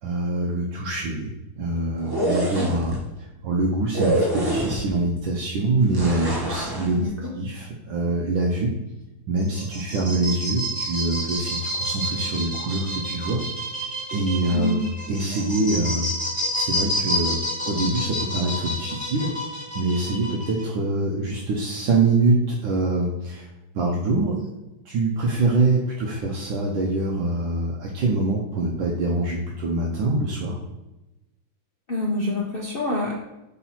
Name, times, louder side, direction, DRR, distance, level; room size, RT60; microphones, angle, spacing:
voice 1, 0.0-1.3 1.6-8.7 9.3-13.4 14.1-14.8 15.1-16.1 16.5-17.4 17.7-23.5 23.7-24.5 24.8-30.6, right 2 dB, 70° right, -2 dB, 1.5 m, -24 dB
sound 1, 2.0-3.0 3.9-5.0 5.9-6.9, right 1 dB, 30° right, 0.4 m, -25 dB
sound 2, 9.4-20.6, equal, 5° left, 1.3 m, -29 dB
voice 2, 31.9-33.1, left 2 dB, 75° left, -3 dB, 0.5 m, -26 dB
4.3 x 4.1 x 5.5 m, 1.0 s
omnidirectional pair, 2.2 m